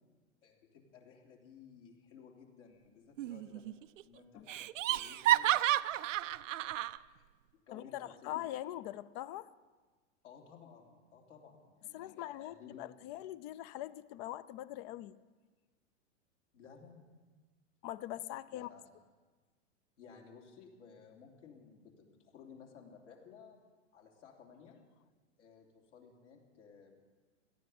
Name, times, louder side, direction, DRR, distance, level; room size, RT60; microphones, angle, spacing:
voice 1, 0.4-3.6 4.0-5.7 6.3-6.6 6.9-7.3 7.5-8.3 10.2-12.8 16.5-17.1 18.5-18.8 20.0-23.6 23.9-24.8 25.4-26.9, left 6 dB, 70° left, 0 dB, 3.3 m, -57 dB
Laughter, 3.2-3.7 4.0-4.1 4.5-7.0, right 14 dB, 80° right, 0.5 m, -31 dB
voice 2, 7.7-9.5 11.9-15.1 17.8-18.7, left 14 dB, 40° left, 18 dB, 0.5 m, -42 dB
18.0 x 13.5 x 5.5 m, 1.4 s
hypercardioid pair, 110°, 38 cm